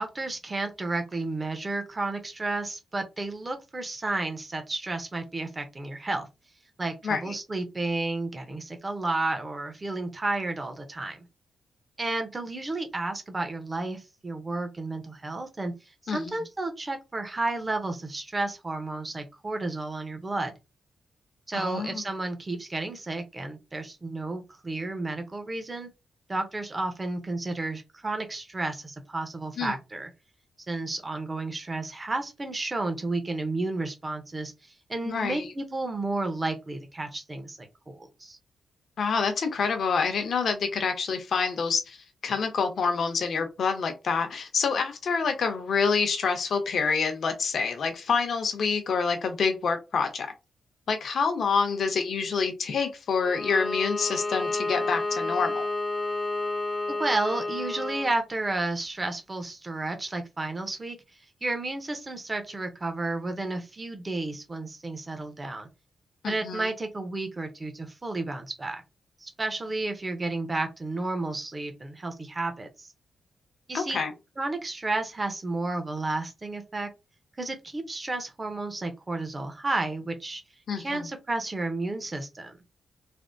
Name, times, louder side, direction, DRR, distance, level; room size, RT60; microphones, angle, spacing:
voice 1, 0.0-6.3 6.8-11.2 12.0-15.7 16.1-20.5 21.5-25.9 26.3-30.1 30.7-34.5 34.9-38.4 57.0-61.0 61.4-65.7 66.3-68.8 69.2-72.9 73.7-74.0 74.4-76.9 77.4-80.4 80.8-82.5, right 2 dB, 25° right, 6 dB, 0.7 m, -32 dB
voice 2, 7.0-7.3 16.1-16.4 21.5-22.0 29.6-29.8 35.0-35.5 39.0-42.0 42.2-50.3 50.9-55.7 66.2-66.7 73.7-74.1 80.7-81.1, left 5 dB, 60° left, 6 dB, 0.7 m, -27 dB
Bowed string instrument, 53.2-58.1, left 2 dB, 30° left, 0.5 m, -30 dB
3.4 x 2.1 x 2.6 m, 0.26 s
cardioid pair, 110°, 0 cm